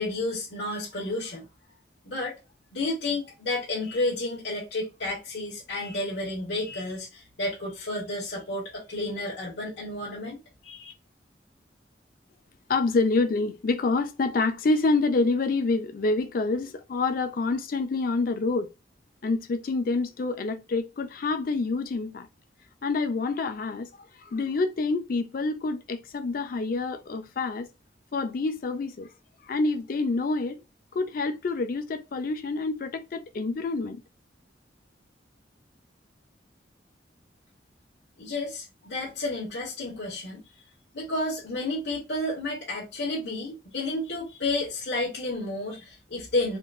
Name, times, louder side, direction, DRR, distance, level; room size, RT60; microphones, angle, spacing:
voice 1, 0.0-1.4 2.0-2.4 2.7-10.9 38.2-40.4 40.9-46.6, left 2 dB, 65° left, 1.1 m, -31 dB
voice 2, 12.7-18.7 19.2-22.3 22.8-27.7 28.1-29.1 29.5-30.6 30.9-34.0, left 3 dB, 50° left, 0.4 m, -27 dB
3.6 x 2.5 x 2.3 m
head